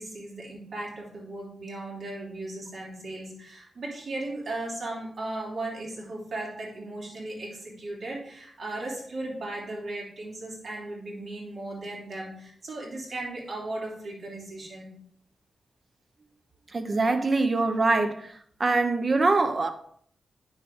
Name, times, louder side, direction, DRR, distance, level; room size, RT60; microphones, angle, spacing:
voice 1, 0.0-14.9, right 2 dB, 50° right, 3.2 m, -36 dB
voice 2, 16.7-18.3 18.6-19.7, right 3 dB, 35° right, 0.9 m, -23 dB
8.9 x 6.2 x 3.8 m
wide cardioid pair, 130°, 0 cm